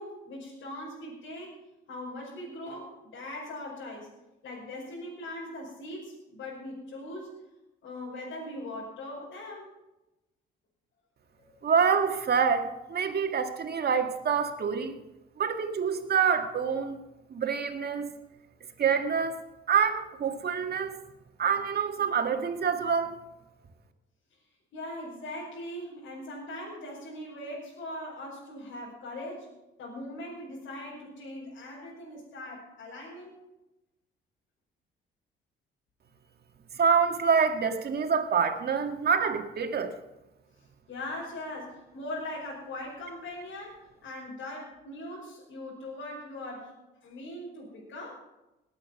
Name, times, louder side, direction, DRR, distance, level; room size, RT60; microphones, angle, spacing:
voice 1, 0.0-1.6 1.9-4.1 4.4-7.4 7.8-9.7 11.4-11.6 24.7-29.5 29.8-33.4 40.9-46.7 47.0-48.1, left 1 dB, 75° left, -5 dB, 5.4 m, -40 dB
voice 2, 11.6-14.9 15.4-17.0 17.3-18.1 18.8-19.4 19.7-20.9 21.4-23.2 36.8-39.9, right 6 dB, 55° right, 6 dB, 1.9 m, -26 dB
19.0 x 8.9 x 5.9 m, 0.99 s
cardioid pair, 90°, 20 cm